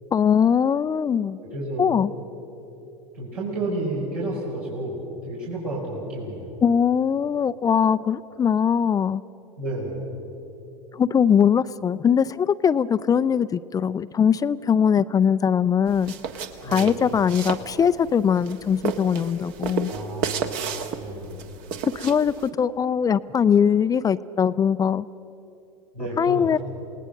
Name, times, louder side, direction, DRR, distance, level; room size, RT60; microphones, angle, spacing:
voice 1, 0.1-1.4 1.8-2.1 6.6-9.2 10.9-16.1 16.6-19.9 21.9-25.1 26.2-26.6, left 7 dB, 20° left, 16 dB, 0.4 m, -21 dB
voice 2, 1.4-2.0 3.1-6.6 9.6-10.0 16.6-17.0 19.9-21.4 25.9-26.6, right 1 dB, 85° right, -7 dB, 5.5 m, -31 dB
sound 1, 15.9-22.5, right 6 dB, 50° right, 1.5 m, -33 dB
28.0 x 19.0 x 6.5 m, 2.9 s
hypercardioid pair, 85°, 19 cm